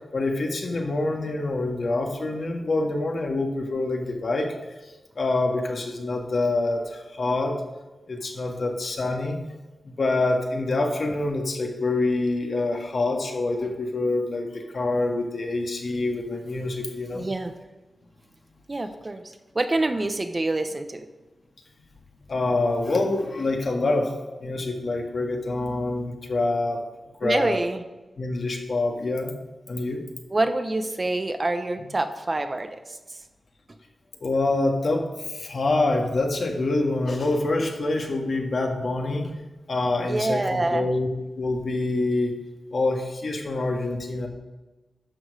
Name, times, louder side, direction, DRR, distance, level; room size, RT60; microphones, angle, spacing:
voice 1, 0.1-4.5 5.2-7.6 8.1-9.4 9.9-17.3 22.3-24.1 24.4-26.8 27.2-27.6 28.2-29.3 29.7-30.0 31.8-31.9 34.2-39.3 39.7-41.1 41.4-42.3 42.7-44.3, left 2 dB, 60° left, 2 dB, 1.7 m, -26 dB
voice 2, 17.1-17.5 18.7-19.2 19.5-21.1 27.2-27.8 30.3-32.7 40.0-40.9, right 2 dB, 35° right, 8 dB, 0.9 m, -26 dB
12.0 x 6.3 x 4.9 m, 1.1 s
wide cardioid pair, 75°, 0 cm